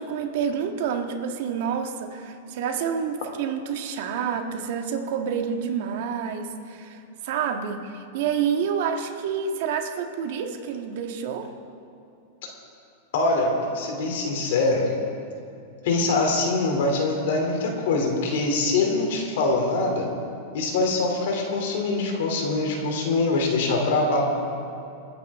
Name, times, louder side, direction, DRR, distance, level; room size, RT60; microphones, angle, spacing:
voice 1, 0.0-11.5, right 7 dB, 60° right, 4 dB, 1.6 m, -28 dB
voice 2, 13.1-14.9 15.8-20.1 20.5-24.2, left 3 dB, 70° left, 1 dB, 3.0 m, -23 dB
29.0 x 9.8 x 3.6 m, 2.6 s
supercardioid pair, 140°, 0 cm